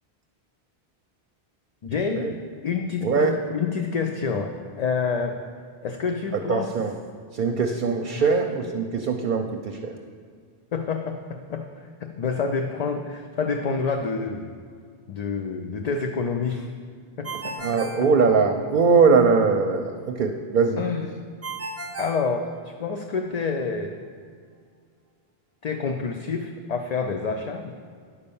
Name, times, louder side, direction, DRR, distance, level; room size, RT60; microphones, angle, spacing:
voice 1, 1.8-2.3 2.6-5.4 5.8-6.7 8.2-8.3 10.7-14.5 15.1-16.7 17.2-18.1 20.8-21.1 22.0-24.0 25.6-27.7, left 5 dB, 50° left, 4 dB, 0.5 m, -28 dB
voice 2, 3.0-3.3 6.5-6.9 7.3-9.9 17.3-20.8, right 5 dB, 60° right, 5 dB, 0.7 m, -21 dB
Ringtone, 17.2-18.9 21.4-23.0, right 3 dB, 20° right, 0.4 m, -36 dB
9.8 x 5.4 x 6.9 m, 2.1 s
omnidirectional pair, 1.1 m